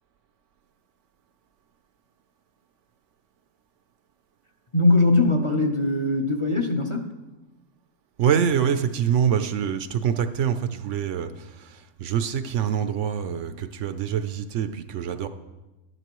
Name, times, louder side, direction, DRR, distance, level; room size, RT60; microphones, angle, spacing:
voice 1, 4.7-7.0, left 2 dB, 30° left, 3 dB, 0.7 m, -21 dB
voice 2, 8.2-15.3, right 8 dB, 70° right, 10 dB, 0.9 m, -25 dB
13.0 x 11.0 x 3.0 m, 1.1 s
omnidirectional pair, 1.4 m